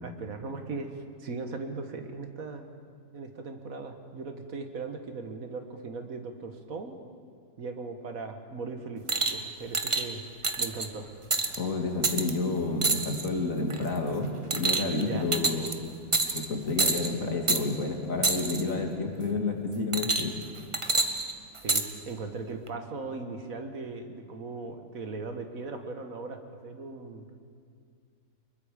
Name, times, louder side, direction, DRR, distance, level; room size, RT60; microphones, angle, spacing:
voice 1, 0.0-2.7 3.1-6.9 7.6-10.2 10.6-11.1 15.0-15.3 21.6-27.3, right 3 dB, 75° right, 6 dB, 1.9 m, -38 dB
sound 1, 9.1-9.4 9.7-10.0 10.4-10.9 11.3-11.6 12.0-12.3 12.8-13.3 13.7-14.0 14.5-15.0 15.3-15.7 16.1-16.5 16.8-17.1 17.5-17.6 18.2-18.6 19.9-20.4 20.7-21.8 22.7-22.8, right 3 dB, 25° right, 0.9 m, -27 dB
voice 2, 11.6-15.9 16.3-20.3, left 3 dB, 70° left, 2 dB, 2.6 m, -30 dB
24.5 x 21.5 x 5.1 m, 2.2 s
omnidirectional pair, 1.5 m